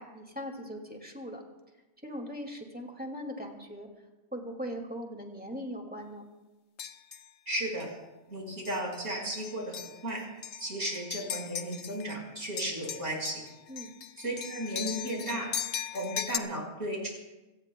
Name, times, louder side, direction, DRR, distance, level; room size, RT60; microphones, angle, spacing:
voice 1, 0.0-1.4 2.0-3.9 4.3-6.3 13.7-13.9, equal, 5° right, 1 dB, 2.2 m, -40 dB
sound 1, 6.8-7.3 7.8-8.0 8.7-9.0 9.3-12.2 12.4-16.4, left 9 dB, 85° left, 1.2 m, -38 dB
voice 2, 7.5-7.9 8.3-10.2 10.6-13.4 14.2-15.5 15.9-17.1, right 1 dB, 70° right, -1 dB, 5.4 m, -34 dB
26.0 x 18.0 x 2.3 m, 1.1 s
omnidirectional pair, 1.3 m